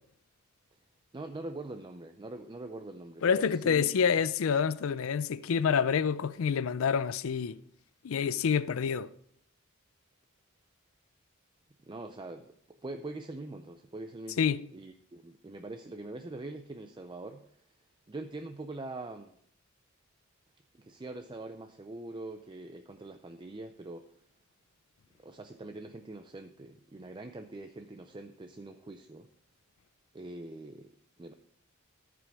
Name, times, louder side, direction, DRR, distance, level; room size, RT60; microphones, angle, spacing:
voice 1, 1.1-4.0 11.9-17.4 18.1-19.4 20.7-24.0 25.2-29.3 30.1-30.9 31.2-31.3, right 2 dB, 25° right, 0.5 m, -43 dB
voice 2, 3.2-7.6 8.0-9.1 14.4-14.6, left 6 dB, 75° left, 0.4 m, -27 dB
13.5 x 5.1 x 4.6 m
head